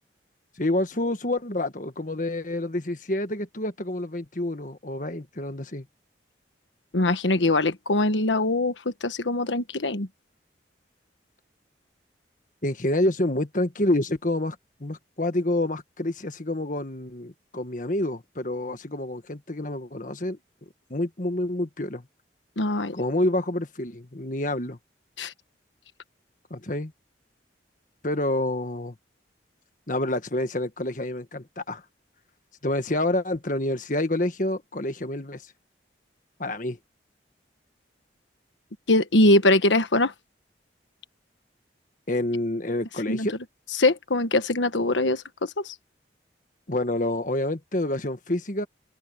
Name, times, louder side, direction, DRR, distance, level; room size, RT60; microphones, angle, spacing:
voice 1, 0.6-5.8 12.6-20.4 20.9-22.0 22.9-24.8 26.5-26.9 28.0-28.9 29.9-31.8 32.6-35.4 36.4-36.8 42.1-43.3 46.7-48.7, left 1 dB, 45° left, 1.6 m, -28 dB
voice 2, 6.9-10.1 22.6-22.9 25.2-25.3 38.9-40.1 43.1-43.3 43.8-45.7, left 2 dB, 85° left, 1.4 m, -22 dB
open air
head